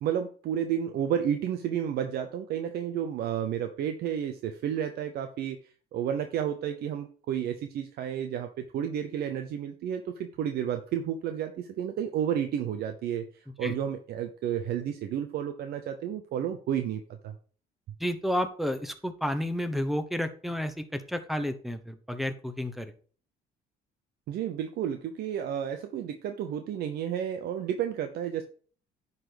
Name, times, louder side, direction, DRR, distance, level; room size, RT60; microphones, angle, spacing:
voice 1, 0.0-5.6 5.9-17.3 24.3-28.4, right 9 dB, 70° right, 7 dB, 0.8 m, -31 dB
voice 2, 18.0-22.9, equal, ahead, 9 dB, 1.0 m, -31 dB
9.9 x 4.1 x 5.1 m, 0.43 s
cardioid pair, 110°, 17 cm